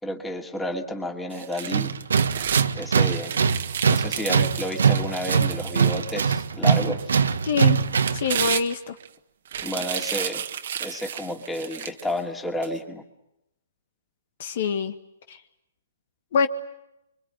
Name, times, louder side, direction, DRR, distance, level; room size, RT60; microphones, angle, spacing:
voice 1, 0.0-1.9 2.7-3.3 3.9-7.0 9.6-10.4 10.8-13.0, left 1 dB, 5° left, 3 dB, 2.5 m, -31 dB
sound 1, 1.3-2.7 3.1-6.5 7.0-7.1 7.7-9.1 9.5-12.1 12.6-12.7, right 9 dB, 65° right, 1.6 m, -32 dB
Tools, 1.7-8.3, right 6 dB, 85° right, 1.5 m, -22 dB
voice 2, 7.4-7.8 8.1-9.0 14.4-14.9 15.3-15.4 16.3-16.5, left 5 dB, 55° left, 9 dB, 1.7 m, -24 dB
26.5 x 23.5 x 9.1 m, 0.86 s
hypercardioid pair, 145°, 0 cm